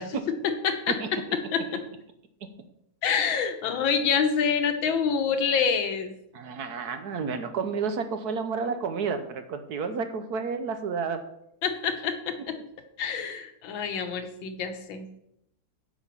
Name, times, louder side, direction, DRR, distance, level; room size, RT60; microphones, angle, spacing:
voice 1, 0.0-1.8 3.0-6.1 11.6-12.6 13.0-15.0, left 6 dB, 85° left, 6 dB, 1.8 m, -27 dB
voice 2, 6.3-11.2, right 5 dB, 65° right, 8 dB, 1.2 m, -31 dB
8.9 x 5.2 x 7.0 m, 0.80 s
omnidirectional pair, 2.1 m